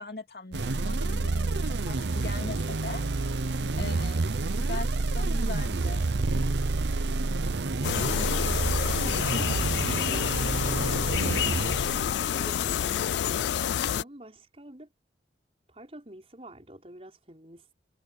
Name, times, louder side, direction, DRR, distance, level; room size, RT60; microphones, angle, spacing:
voice 1, 0.0-3.0 3.8-6.1, left 3 dB, 60° left, 2.7 m, -40 dB
sound 1, 0.5-12.5, right 3 dB, 85° right, 0.8 m, -28 dB
sound 2, 7.8-14.0, left 10 dB, 80° left, 0.3 m, -28 dB
voice 2, 9.0-11.1 12.0-14.9 15.7-17.7, right 1 dB, 35° right, 5.8 m, -47 dB
head